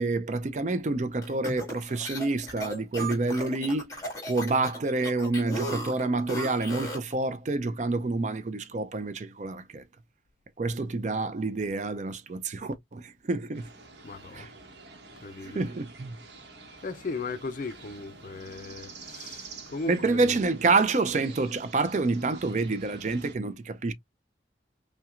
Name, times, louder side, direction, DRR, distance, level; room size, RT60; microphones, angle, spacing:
voice 1, 0.0-3.9 4.3-9.8 10.6-13.7 14.3-14.5 15.4-16.2 19.9-23.9, right 3 dB, 40° right, 0.4 m, -28 dB
sound 1, 1.2-7.1, equal, 20° left, 1.9 m, -36 dB
sound 2, 13.5-23.4, right 3 dB, 70° right, 0.9 m, -48 dB
voice 2, 14.0-14.5 15.2-15.6 16.8-20.2, left 3 dB, 45° left, 0.4 m, -37 dB
5.7 x 2.2 x 2.4 m
head